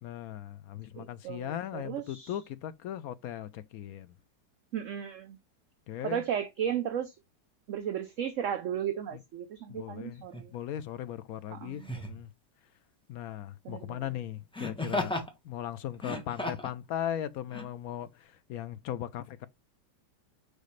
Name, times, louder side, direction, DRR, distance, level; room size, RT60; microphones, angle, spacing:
voice 1, 0.0-4.1 5.9-6.2 9.7-10.2 10.5-12.3 13.1-15.2 15.4-19.5, left 11 dB, 70° left, 0.9 m, -38 dB
voice 2, 0.9-2.3 4.7-5.4 6.0-7.1 7.7-10.5 11.5-11.9 13.6-14.1, right 9 dB, 65° right, 0.8 m, -35 dB
Laughter, 10.3-10.5 11.8-12.2 14.5-15.3 15.9-16.8 17.5-17.6, left 1 dB, 5° left, 1.2 m, -34 dB
6.6 x 5.2 x 3.1 m
omnidirectional pair, 1.9 m